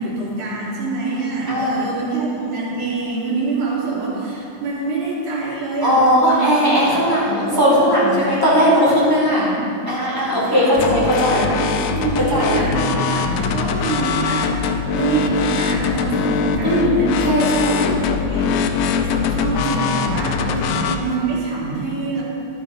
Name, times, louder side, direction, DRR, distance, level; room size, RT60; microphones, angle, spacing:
voice 1, 0.0-6.5 7.1-7.7 8.2-9.7 10.3-14.5 14.9-20.4 21.0-22.2, right 3 dB, 90° right, -7 dB, 4.1 m, -26 dB
voice 2, 1.5-1.9 5.8-9.5 9.9-11.5 12.2-12.6 16.6-16.9 17.2-17.8 20.4-20.8, equal, 5° right, -7 dB, 2.5 m, -18 dB
sound 1, 10.8-21.0, left 5 dB, 80° left, 1.9 m, -22 dB
11.5 x 8.2 x 5.0 m, 2.7 s
omnidirectional pair, 3.4 m